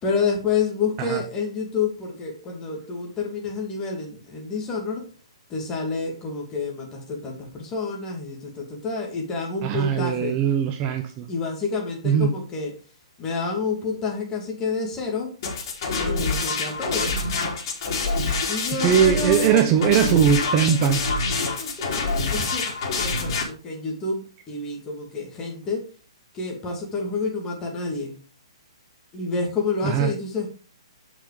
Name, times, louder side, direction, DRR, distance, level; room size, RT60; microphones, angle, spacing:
voice 1, 0.0-5.0 5.5-10.4 11.3-12.7 13.2-15.3 16.0-17.3 18.5-25.9 26.3-28.1 29.1-30.5, left 4 dB, 20° left, 0 dB, 2.7 m, -29 dB
voice 2, 9.6-11.3 12.0-12.3 18.8-21.0 29.8-30.1, right 8 dB, 30° right, 8 dB, 0.8 m, -20 dB
sound 1, 15.4-23.4, left 3 dB, 45° left, 3.5 m, -26 dB
8.2 x 5.9 x 5.1 m, 0.38 s
hypercardioid pair, 145°, 3 cm